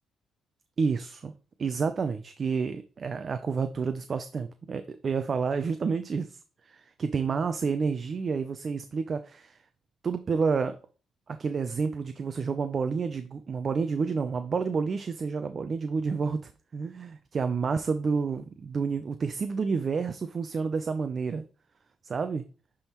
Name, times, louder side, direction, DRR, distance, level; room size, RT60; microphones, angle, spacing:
voice 1, 0.8-1.3 1.6-6.4 6.6-9.6 10.0-10.8 11.3-21.4 22.0-22.4, right 5 dB, 45° right, 9 dB, 0.4 m, -29 dB
9.7 x 3.6 x 3.0 m, 0.36 s
cardioid pair, 90°, 0 cm